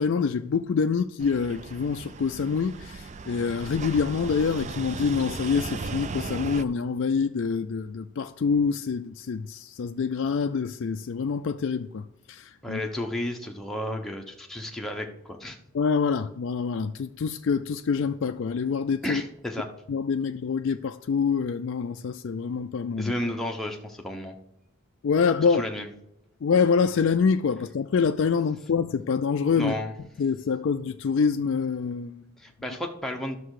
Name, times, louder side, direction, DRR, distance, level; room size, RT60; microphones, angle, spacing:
voice 1, 0.0-12.8 15.7-19.2 19.9-23.1 25.0-25.6 26.4-29.7 30.2-32.2, left 5 dB, 55° left, 0.3 m, -26 dB
sound 1, 1.2-6.6, right 4 dB, 30° right, 0.3 m, -37 dB
voice 2, 12.6-15.6 19.0-19.7 23.0-24.4 25.4-25.9 29.6-29.9 32.4-33.4, left 1 dB, ahead, 0.9 m, -32 dB
11.0 x 6.5 x 4.8 m
head